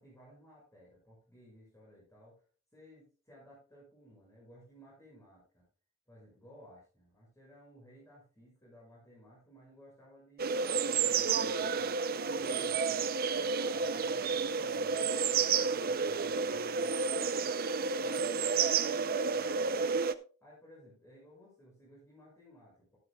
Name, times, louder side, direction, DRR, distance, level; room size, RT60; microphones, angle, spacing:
voice 1, 0.0-2.4 2.7-5.6 6.1-13.0 13.4-17.2 18.0-19.8 20.4-23.0, equal, 15° left, -6 dB, 6.6 m, -58 dB
sound 1, 10.4-20.1, right 5 dB, 50° right, 0.6 m, -31 dB
12.5 x 12.5 x 2.3 m, 0.36 s
head